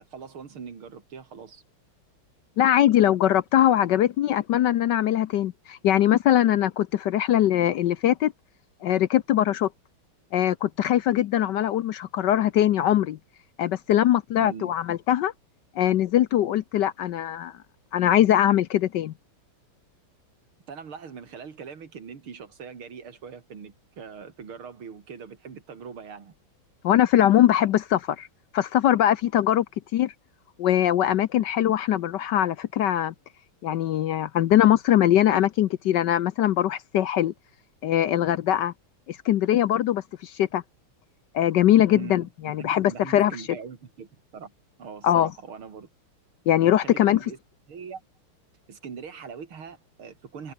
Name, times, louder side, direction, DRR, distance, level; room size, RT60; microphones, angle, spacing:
voice 1, 0.0-1.6 14.4-14.7 20.7-26.3 41.9-44.5 44.8-45.9 46.8-47.4 47.7-48.0 48.7-50.5, right 6 dB, 80° right, 3.4 m, -41 dB
voice 2, 2.6-8.3 8.8-9.7 10.3-13.2 13.6-15.3 15.7-17.5 17.9-19.1 26.8-28.3 28.5-29.6 29.9-30.1 30.6-33.1 33.6-37.3 37.8-38.7 39.1-40.6 41.3-43.3 45.0-45.3 46.5-47.2, left 12 dB, 65° left, 1.2 m, -21 dB
omnidirectional pair, 2.3 m